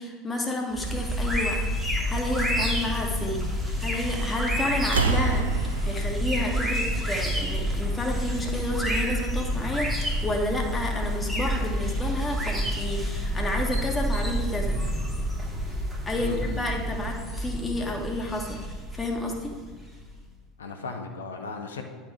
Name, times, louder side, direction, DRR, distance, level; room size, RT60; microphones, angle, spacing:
voice 1, 0.0-3.4 3.8-14.8 16.0-18.6 18.9-19.5, left 1 dB, 15° left, 1 dB, 1.4 m, -31 dB
sound 1, 0.7-20.1, equal, 5° right, 1.3 m, -29 dB
sound 2, 4.2-4.5 4.8-7.6 8.7-8.8, right 4 dB, 80° right, 0.4 m, -29 dB
voice 2, 16.2-16.7 20.6-21.8, left 4 dB, 75° left, 4 dB, 0.6 m, -36 dB
10.0 x 3.9 x 4.7 m, 1.4 s
figure-of-eight pair, 75°, 0 cm